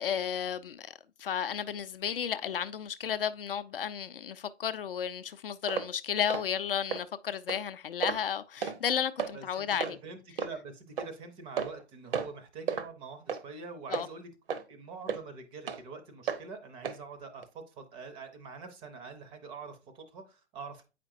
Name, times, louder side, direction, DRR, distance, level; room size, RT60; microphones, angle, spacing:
voice 1, 0.0-10.0 13.9-14.1, left 8 dB, 55° left, 0.5 m, -33 dB
sound 1, 5.7-5.9 6.3-6.5 6.9-7.0 7.5-7.6 8.0-8.3 8.6-8.8 9.2-9.3 9.8-10.0 10.4-10.5 11.0-11.1 11.6-11.8 12.1-12.4 12.7-12.9 13.3-13.4 13.9-14.1 14.5-14.6 15.1-15.2 15.7-15.8 16.3-16.4 16.8-17.0 17.4-17.5, right 7 dB, 55° right, 0.8 m, -33 dB
voice 2, 9.3-14.3 14.7-20.8, right 4 dB, 15° right, 0.6 m, -45 dB
8.5 x 5.0 x 2.6 m
figure-of-eight pair, 120°, 34 cm